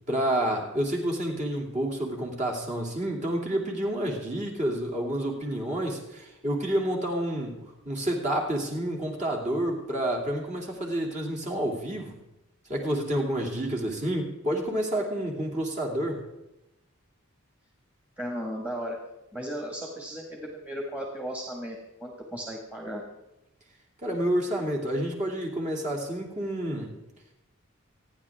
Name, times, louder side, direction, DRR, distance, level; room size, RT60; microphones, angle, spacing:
voice 1, 0.1-7.6 7.8-12.2 12.7-16.2 24.0-26.9, right 1 dB, 35° right, 0 dB, 2.9 m, -29 dB
voice 2, 18.2-19.0 19.3-23.0, equal, 5° right, -1 dB, 1.9 m, -35 dB
28.0 x 10.0 x 3.7 m, 0.90 s
head